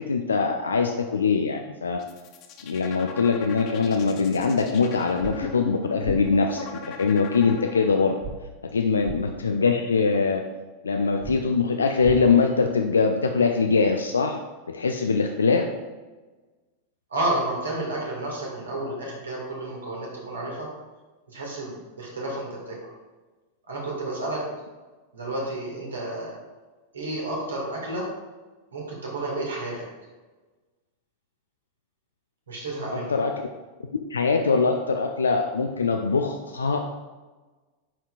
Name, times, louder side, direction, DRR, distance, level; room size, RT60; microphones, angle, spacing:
voice 1, 0.1-2.0 2.6-8.2 8.7-10.4 10.8-14.4 14.7-15.7 32.9-33.3 34.1-36.8, left 4 dB, 75° left, 4 dB, 0.4 m, -22 dB
sound 1, 1.9-8.2, left 8 dB, 40° left, 0.7 m, -39 dB
sound 2, 5.2-5.3 6.0-6.2 8.2-8.3 9.0-9.2 11.2-11.4 12.0-12.2, right 5 dB, 30° right, 0.7 m, -34 dB
voice 2, 17.1-20.7 21.3-22.8 23.7-24.4 25.1-26.4 26.9-28.1 28.7-29.9 32.5-33.2, right 1 dB, 70° right, -2 dB, 1.9 m, -31 dB
10.0 x 4.4 x 2.5 m, 1.3 s
figure-of-eight pair, 90°, 0 cm